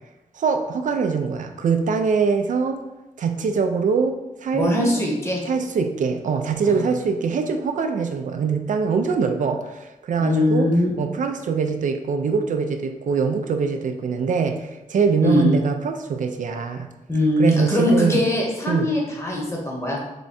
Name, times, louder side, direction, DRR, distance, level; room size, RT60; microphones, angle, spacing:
voice 1, 0.4-2.8 3.2-5.0 5.5-10.7 11.0-16.9 17.4-18.2 18.7-18.9, right 5 dB, 70° right, 6 dB, 0.4 m, -23 dB
voice 2, 4.5-5.4 6.6-6.8 10.2-10.9 15.2-15.6 17.1-20.0, left 1 dB, 20° left, -2 dB, 0.9 m, -21 dB
3.6 x 3.4 x 4.1 m, 0.99 s
wide cardioid pair, 175°, 14 cm